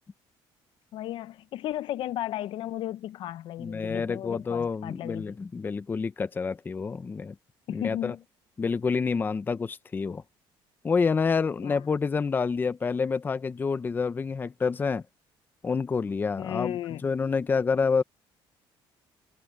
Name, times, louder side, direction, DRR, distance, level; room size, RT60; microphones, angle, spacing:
voice 1, 0.9-5.4 7.7-8.2 11.6-11.8 16.4-17.0, left 13 dB, 60° left, 0.7 m, -34 dB
voice 2, 3.6-7.3 7.7-8.2 8.6-10.2 10.8-15.0 15.6-18.0, left 5 dB, 20° left, 0.6 m, -28 dB
cardioid pair, 140°, 10 cm